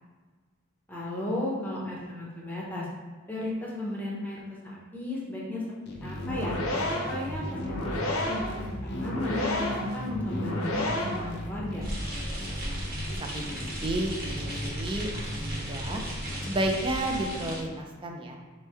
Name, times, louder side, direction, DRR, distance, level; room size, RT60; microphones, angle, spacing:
voice 1, 0.9-2.9 3.3-5.6 6.0-6.5 7.1-11.9, left 1 dB, 10° left, -5 dB, 0.7 m, -34 dB
sound 1, 5.9-17.1, equal, 50° left, 0.6 m, -38 dB
sound 2, 6.2-11.4, left 1 dB, 85° left, 0.9 m, -31 dB
sound 3, 11.8-17.6, right 1 dB, 45° right, 1.1 m, -36 dB
voice 2, 12.5-12.8 13.2-16.0 16.4-18.4, right 1 dB, 25° right, 2 dB, 0.4 m, -32 dB
4.4 x 3.1 x 3.3 m, 1.4 s
head